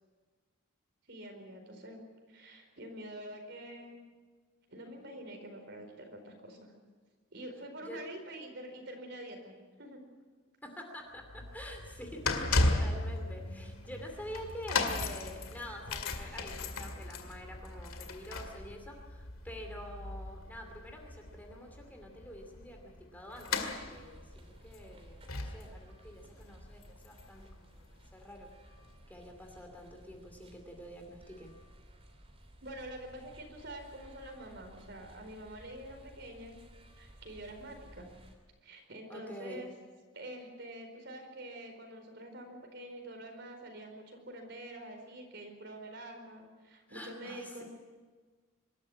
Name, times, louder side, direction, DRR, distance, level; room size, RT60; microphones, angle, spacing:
voice 1, 1.1-2.0 2.3-4.0 4.7-6.6 7.3-10.0 32.6-36.6 37.0-38.1 38.6-39.7 40.1-47.6, right 1 dB, 55° right, 4 dB, 4.6 m, -46 dB
voice 2, 10.6-12.4 12.7-27.8 28.1-28.5 29.1-31.5 39.1-39.6 46.9-47.6, equal, 10° left, 3 dB, 2.6 m, -47 dB
sound 1, 11.2-28.1 28.8-28.9, left 2 dB, 85° left, 2.2 m, -36 dB
sound 2, 23.3-38.3, equal, 30° right, 3.2 m, -56 dB
24.5 x 13.5 x 9.8 m, 1.4 s
head